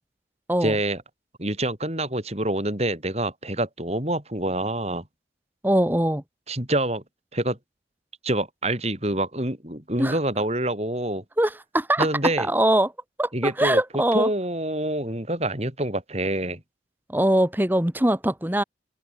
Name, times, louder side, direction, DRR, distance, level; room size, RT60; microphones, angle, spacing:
voice 1, 0.6-1.0 1.4-5.0 6.5-7.0 7.3-7.6 8.2-11.2 12.0-12.5 13.3-13.8 14.1-16.6, right 1 dB, 35° right, 5.2 m, -26 dB
voice 2, 5.6-6.2 10.0-10.2 11.4-12.1 12.4-12.9 13.2-14.3 17.1-18.6, right 1 dB, 10° right, 1.1 m, -22 dB
open air
head